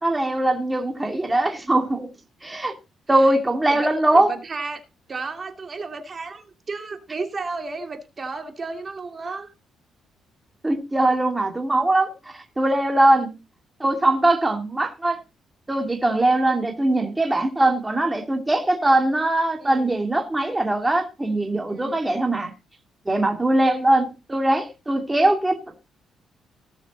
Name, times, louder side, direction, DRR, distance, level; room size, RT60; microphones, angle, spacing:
voice 1, 0.0-2.1 2.4-2.8 3.1-4.3 10.6-13.3 13.8-15.2 15.7-22.5 23.1-25.6, right 1 dB, 15° right, 2.3 m, -21 dB
voice 2, 3.7-4.8 5.1-9.5 19.6-19.9 21.7-22.0, right 4 dB, 35° right, 2.6 m, -33 dB
18.5 x 7.1 x 4.1 m
cardioid pair, 90°, 0 cm